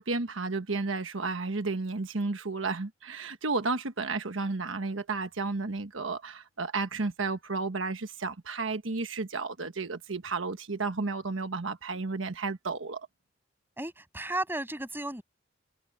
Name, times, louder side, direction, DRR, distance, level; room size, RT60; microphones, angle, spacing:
voice 1, 0.0-13.1, right 3 dB, 90° right, 1.3 m, -32 dB
voice 2, 13.8-15.2, right 1 dB, 10° right, 7.6 m, -34 dB
head